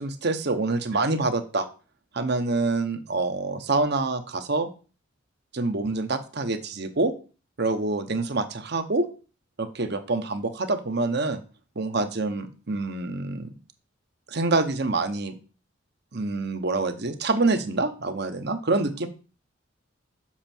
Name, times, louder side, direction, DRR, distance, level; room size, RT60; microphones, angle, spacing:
voice 1, 0.0-1.7 2.1-4.7 5.5-7.1 7.6-9.1 9.6-11.4 11.8-13.5 14.3-15.3 16.1-19.1, right 3 dB, 55° right, 8 dB, 0.9 m, -26 dB
7.3 x 5.7 x 4.5 m, 0.35 s
head